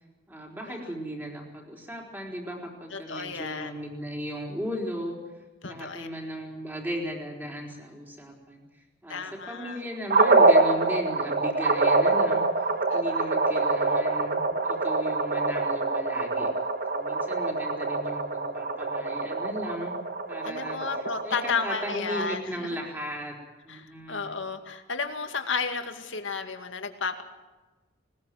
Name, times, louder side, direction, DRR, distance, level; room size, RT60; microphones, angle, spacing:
voice 1, 0.3-5.2 5.7-8.6 9.0-16.5 16.9-19.9 20.3-20.9 21.2-23.4 23.6-24.4, equal, 10° right, 0 dB, 4.1 m, -36 dB
voice 2, 2.9-3.7 5.6-6.1 9.1-9.8 12.9-13.3 20.4-22.8 23.7-27.2, left 5 dB, 75° left, 6 dB, 2.2 m, -33 dB
sound 1, 10.1-22.4, right 3 dB, 45° right, 1.4 m, -25 dB
20.0 x 20.0 x 7.7 m, 1.2 s
head